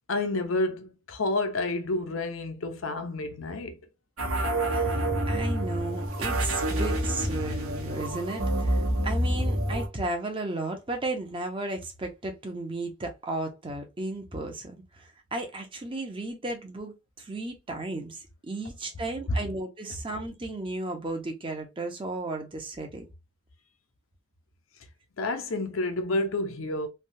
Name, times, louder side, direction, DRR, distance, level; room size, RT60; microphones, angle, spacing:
voice 1, 0.1-3.8 19.3-19.4 25.2-26.9, left 2 dB, 65° left, 0.7 m, -29 dB
sound 1, 4.2-9.9, right 1 dB, 85° right, 1.1 m, -27 dB
voice 2, 4.7-18.2 18.5-23.1, right 2 dB, 25° right, 0.8 m, -34 dB
3.3 x 2.3 x 2.7 m
head